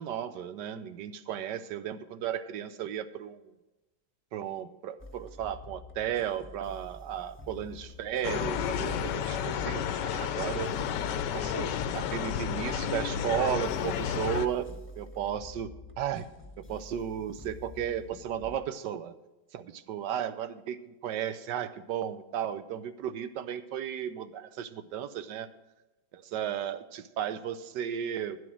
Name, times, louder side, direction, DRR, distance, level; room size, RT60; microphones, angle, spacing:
voice 1, 0.0-3.4 4.3-10.7 11.3-11.7 11.9-14.7 15.0-15.7 16.0-16.3 16.6-19.2 19.5-25.5 26.1-28.4, right 9 dB, 70° right, 12 dB, 1.2 m, -34 dB
sound 1, 5.0-18.6, left 2 dB, 10° left, 1.0 m, -48 dB
sound 2, 8.2-14.5, left 8 dB, 70° left, 1.2 m, -31 dB
11.5 x 7.9 x 6.2 m, 1.0 s
omnidirectional pair, 2.2 m